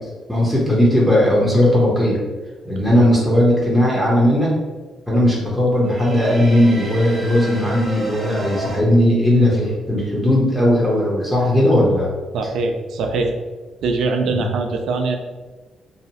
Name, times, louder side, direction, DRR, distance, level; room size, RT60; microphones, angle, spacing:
voice 1, 0.3-2.2 2.6-4.5 5.1-12.1 14.3-14.5, left 1 dB, 5° left, -5 dB, 0.7 m, -17 dB
sound 1, 5.8-8.8, right 1 dB, 35° right, 0.7 m, -30 dB
voice 2, 12.3-13.4 13.8-15.2, right 3 dB, 75° right, 4 dB, 0.3 m, -22 dB
2.7 x 2.0 x 2.9 m, 1.3 s
cardioid pair, 90°, 0 cm